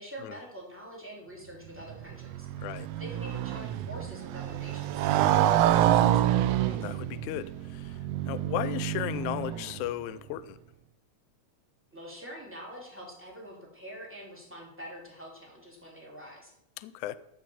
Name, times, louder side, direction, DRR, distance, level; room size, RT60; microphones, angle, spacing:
voice 1, 0.0-2.5 2.7-6.2 11.9-16.5, equal, 5° right, -2 dB, 2.6 m, -45 dB
Motorcycle, 1.8-10.0, right 12 dB, 85° right, 1.5 m, -27 dB
voice 2, 2.6-2.9 6.7-8.0 8.3-10.6 16.8-17.2, left 13 dB, 85° left, 15 dB, 2.0 m, -35 dB
13.5 x 5.5 x 6.9 m, 0.81 s
omnidirectional pair, 3.4 m